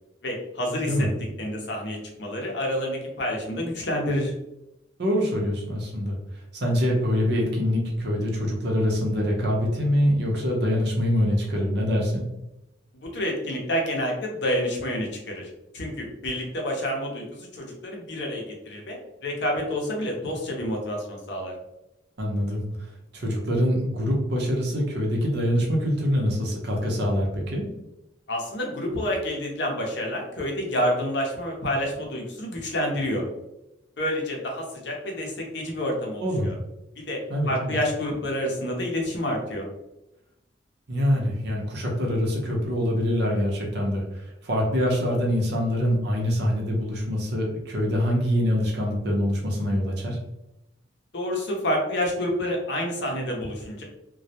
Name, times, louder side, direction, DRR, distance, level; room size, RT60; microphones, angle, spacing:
voice 1, 0.2-1.1 1.4-4.3 12.9-15.5 15.7-21.5 28.3-33.3 34.0-36.5 37.0-39.7 51.1-53.8, equal, 60° left, 0 dB, 0.6 m, -28 dB
voice 2, 5.0-12.2 22.2-27.6 36.2-36.5 37.3-37.7 40.9-50.2, equal, 55° right, -1 dB, 0.6 m, -25 dB
2.2 x 2.0 x 2.7 m, 0.90 s
head